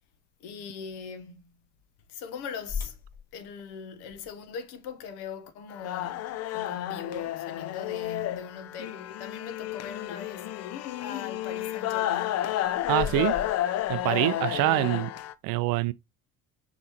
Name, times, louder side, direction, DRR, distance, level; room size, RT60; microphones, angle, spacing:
voice 1, 0.4-1.6 2.1-2.9 3.3-10.5 11.0-13.6 14.1-15.0, left 6 dB, 60° left, 1.0 m, -41 dB
sound 1, 2.7-8.6 9.2-9.3 9.9-10.1 12.2-14.8, left 6 dB, 20° left, 2.8 m, -42 dB
sound 2, 5.7-15.3, left 13 dB, 40° left, 0.4 m, -31 dB
voice 2, 12.9-13.3 13.9-15.1 15.4-15.9, right 19 dB, 55° right, 0.5 m, -25 dB
6.4 x 2.9 x 2.8 m
hypercardioid pair, 60°, 43 cm